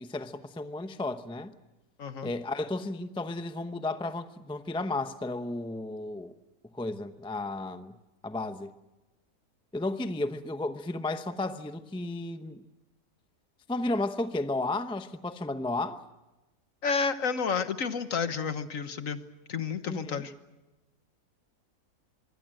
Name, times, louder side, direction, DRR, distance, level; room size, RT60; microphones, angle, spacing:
voice 1, 0.0-1.5 2.2-6.3 6.7-7.9 8.2-8.7 9.7-12.6 13.7-16.0 19.9-20.2, left 2 dB, 5° left, 0.6 m, -33 dB
voice 2, 2.0-2.3 16.8-19.2 19.5-20.3, left 5 dB, 60° left, 1.6 m, -30 dB
25.0 x 24.0 x 7.8 m
omnidirectional pair, 1.6 m